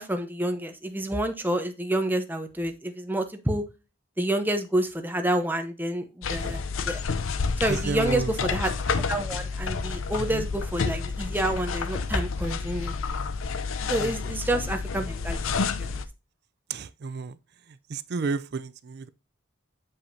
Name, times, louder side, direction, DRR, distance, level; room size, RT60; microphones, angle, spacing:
voice 1, 0.0-3.6 4.2-7.0 7.6-8.7 9.1-12.9 13.9-15.4 15.8-16.0, right 1 dB, 10° right, 0.8 m, -28 dB
sound 1, 6.2-16.1, left 4 dB, 80° left, 0.6 m, -30 dB
voice 2, 7.7-8.3 10.2-10.5 14.0-14.1 16.7-17.4 17.7-19.1, right 4 dB, 55° right, 0.4 m, -32 dB
7.2 x 5.4 x 2.7 m
head